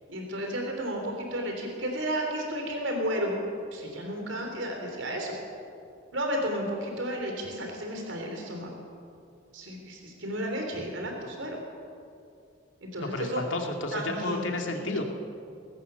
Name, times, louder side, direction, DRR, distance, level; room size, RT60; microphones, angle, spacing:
voice 1, 0.1-3.4 3.7-5.4 6.1-8.7 9.5-11.6 12.8-13.4 13.9-14.4 14.8-15.0, equal, 85° right, 2 dB, 3.6 m, -32 dB
voice 2, 13.0-15.0, left 2 dB, 90° left, 3 dB, 2.5 m, -31 dB
21.5 x 18.0 x 7.0 m, 2.5 s
head